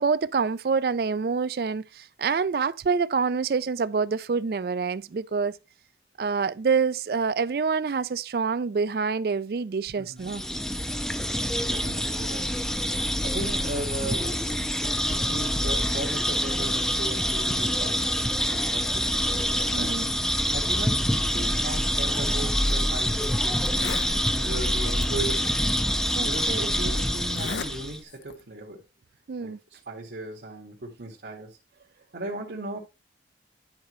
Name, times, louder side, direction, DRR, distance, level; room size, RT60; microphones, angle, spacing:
voice 1, 0.0-5.6 6.2-10.4 19.7-20.1 26.1-26.7 29.3-29.6, right 5 dB, 60° right, 0.4 m, -26 dB
voice 2, 10.0-10.3 11.6-12.6 13.2-20.0 20.5-25.7 26.2-28.8 29.4-31.6 32.1-32.8, right 2 dB, 80° right, 1.7 m, -37 dB
sound 1, 10.2-28.0, equal, 5° left, 0.4 m, -26 dB
Zipper (clothing), 22.6-22.7 23.2-23.3 23.6-24.2 25.0-25.1 26.1-26.2 27.2-27.7 28.1-28.4, left 5 dB, 90° left, 0.7 m, -35 dB
10.5 x 5.1 x 3.1 m
head